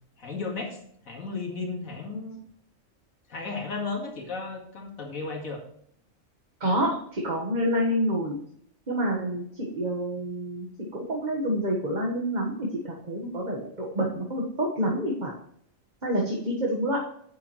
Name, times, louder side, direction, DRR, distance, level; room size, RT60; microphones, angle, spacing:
voice 1, 0.2-0.8 1.0-2.4 3.3-5.6, left 3 dB, 85° left, 1 dB, 2.4 m, -34 dB
voice 2, 6.6-8.4 8.9-15.3 16.0-17.0, equal, 35° right, -2 dB, 1.6 m, -28 dB
10.0 x 7.3 x 3.1 m, 0.65 s
omnidirectional pair, 1.4 m